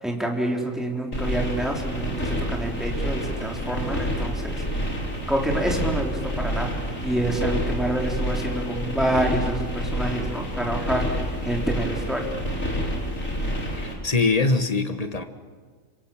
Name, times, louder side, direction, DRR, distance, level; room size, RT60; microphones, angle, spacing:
voice 1, 0.0-4.6 5.3-12.3, right 1 dB, ahead, 0 dB, 3.7 m, -27 dB
sound 1, 1.1-13.9, equal, 75° left, 4.6 m, -28 dB
voice 2, 13.8-15.2, left 3 dB, 30° left, 8 dB, 1.4 m, -23 dB
26.5 x 24.5 x 7.4 m, 1.5 s
omnidirectional pair, 1.4 m